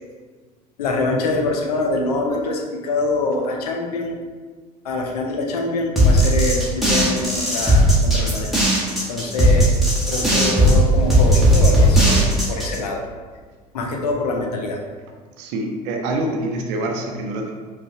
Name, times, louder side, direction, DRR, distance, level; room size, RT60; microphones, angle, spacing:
voice 1, 0.8-4.2 4.8-9.7 10.1-13.0 13.7-14.8, left 2 dB, 70° left, 1 dB, 0.6 m, -25 dB
sound 1, 6.0-12.8, equal, ahead, 1.4 m, -16 dB
voice 2, 15.4-17.5, right 2 dB, 55° right, 2 dB, 0.7 m, -25 dB
5.1 x 2.4 x 2.8 m, 1.4 s
figure-of-eight pair, 65°, 21 cm